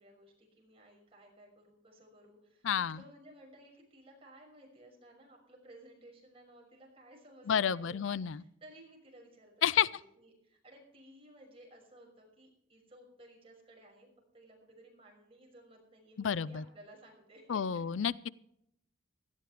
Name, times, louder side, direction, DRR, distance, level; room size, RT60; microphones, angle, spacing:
voice 1, 0.0-14.1 14.3-17.8, right 1 dB, 30° right, 0 dB, 5.9 m, -57 dB
voice 2, 2.6-3.0 7.5-8.4 9.6-9.9 16.2-16.6 17.5-18.3, left 8 dB, 75° left, 20 dB, 0.4 m, -30 dB
18.0 x 13.0 x 3.4 m, 0.75 s
head